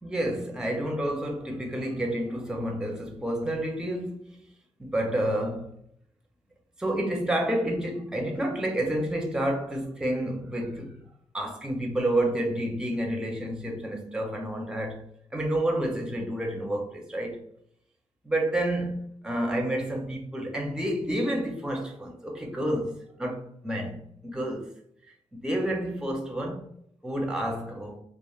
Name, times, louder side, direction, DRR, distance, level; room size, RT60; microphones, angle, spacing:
voice 1, 0.0-4.3 4.8-5.7 6.8-11.0 11.3-17.4 18.2-24.7 25.3-26.6 27.0-28.0, right 1 dB, 5° right, 0.5 m, -29 dB
3.1 x 2.4 x 2.3 m
wide cardioid pair, 155°, 12 cm